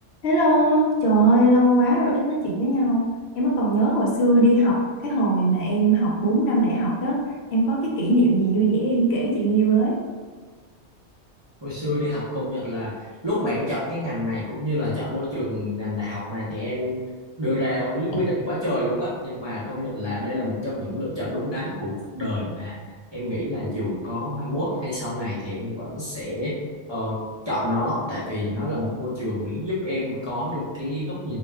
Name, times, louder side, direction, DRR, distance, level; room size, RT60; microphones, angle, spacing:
voice 1, 0.2-3.0 3.4-7.2 7.5-10.0, right 1 dB, 70° left, -3 dB, 0.8 m, -20 dB
voice 2, 11.6-17.0 17.4-22.8 23.1-26.6 26.9-27.2 27.4-31.4, left 1 dB, 30° right, -11 dB, 0.5 m, -28 dB
2.4 x 2.1 x 3.3 m, 1.4 s
omnidirectional pair, 1.2 m